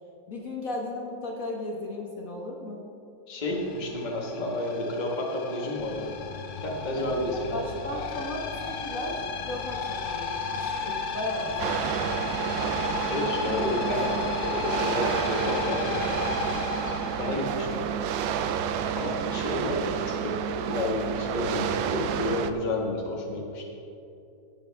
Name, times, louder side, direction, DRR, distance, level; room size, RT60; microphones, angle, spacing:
voice 1, 0.3-2.8 6.9-11.7 17.2-17.4, left 1 dB, 50° left, -2 dB, 1.6 m, -35 dB
voice 2, 3.3-6.1 6.6-7.6 13.1-16.0 17.2-17.9 18.9-20.4 20.7-23.7, left 1 dB, 25° left, -2 dB, 1.4 m, -30 dB
sound 1, 3.4-18.0, left 4 dB, 75° left, 1.6 m, -34 dB
sound 2, 11.6-22.5, right 8 dB, 90° right, 1.3 m, -30 dB
17.5 x 8.2 x 3.4 m, 2.8 s
omnidirectional pair, 2.0 m